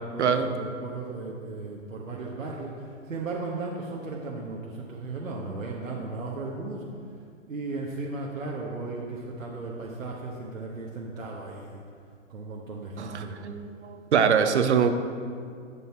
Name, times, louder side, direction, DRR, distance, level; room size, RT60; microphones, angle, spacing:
voice 1, 0.1-6.9 7.5-11.8 12.3-13.4, right 3 dB, 80° right, -3 dB, 1.4 m, -36 dB
voice 2, 13.0-14.9, right 7 dB, 60° right, 8 dB, 0.9 m, -23 dB
10.5 x 7.2 x 4.4 m, 2.2 s
figure-of-eight pair, 120°, 39 cm